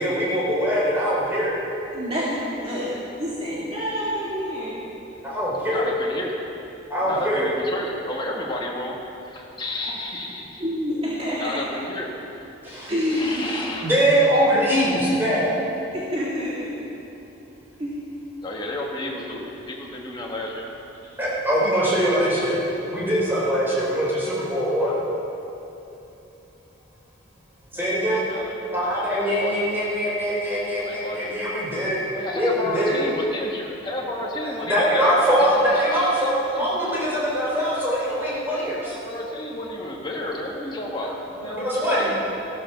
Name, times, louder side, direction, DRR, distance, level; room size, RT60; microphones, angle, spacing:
voice 1, 0.0-1.6 5.2-5.9 6.9-7.5 12.6-12.9 13.8-15.5 21.2-24.9 27.7-28.2 28.7-32.0 32.3-32.9 34.7-38.9 41.4-42.1, equal, 10° right, -7 dB, 4.4 m, -22 dB
voice 2, 1.9-2.9 3.2-4.8 7.0-7.1 9.8-9.9 10.6-11.6 12.9-13.4 15.9-16.7 17.8-18.0, equal, 30° right, -8 dB, 2.1 m, -27 dB
voice 3, 5.6-6.3 7.0-9.0 9.3-10.7 11.4-12.1 13.1-14.0 18.4-20.7 27.7-29.7 30.7-31.4 32.1-35.2 35.8-36.7 37.4-37.5 38.3-38.4 38.8-42.1, left 1 dB, 20° left, -2 dB, 1.9 m, -32 dB
15.0 x 13.0 x 6.0 m, 2.9 s
head